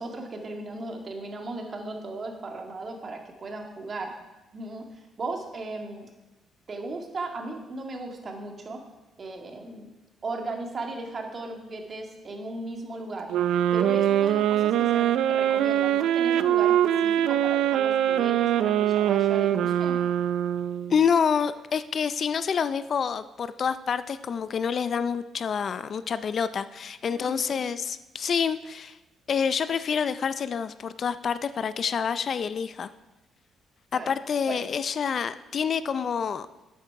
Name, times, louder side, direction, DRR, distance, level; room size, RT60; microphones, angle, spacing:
voice 1, 0.0-4.1 4.5-4.9 5.2-6.1 6.7-8.8 9.2-9.9 10.2-13.3 13.7-20.0 27.1-27.7 33.9-34.1 34.5-34.6, right 2 dB, 40° right, 2 dB, 2.0 m, -36 dB
sound 1, 13.3-21.0, right 11 dB, 85° right, 0.4 m, -23 dB
voice 2, 20.9-29.0 29.3-32.9 33.9-36.5, left 6 dB, 50° left, 14 dB, 0.4 m, -27 dB
12.0 x 8.5 x 4.8 m, 1.0 s
cardioid pair, 90°, 0 cm